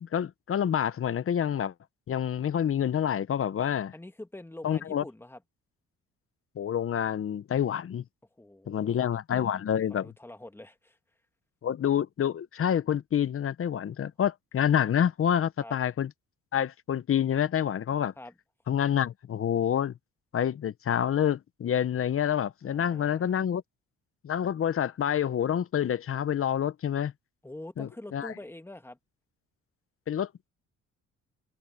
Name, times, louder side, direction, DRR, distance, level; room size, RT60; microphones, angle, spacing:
voice 1, 0.0-1.7 2.1-3.9 4.6-5.0 6.6-8.0 8.7-10.1 11.6-16.1 16.5-18.1 18.7-19.9 20.3-23.6 24.2-27.1 27.8-28.3 30.1-30.5, left 9 dB, 45° left, 0.9 m, -27 dB
voice 2, 3.9-5.4 8.4-8.9 9.5-9.6 9.9-11.0 15.6-15.8 18.2-18.3 22.7-23.4 27.4-29.0, left 1 dB, 10° left, 2.1 m, -45 dB
cardioid pair, 90°, 30 cm